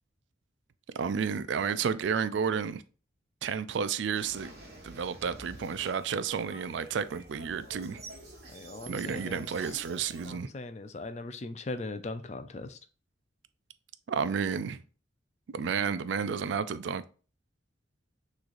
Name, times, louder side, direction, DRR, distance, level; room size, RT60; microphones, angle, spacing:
voice 1, 0.9-2.8 3.4-4.5 4.8-8.0 8.9-10.5 14.1-14.8 15.5-17.0, right 6 dB, 70° right, 0.4 m, -31 dB
sound 1, 4.1-10.3, right 2 dB, 50° right, 1.3 m, -48 dB
voice 2, 8.5-9.8 10.2-12.8, left 2 dB, 35° left, 0.4 m, -40 dB
6.2 x 3.2 x 2.5 m
head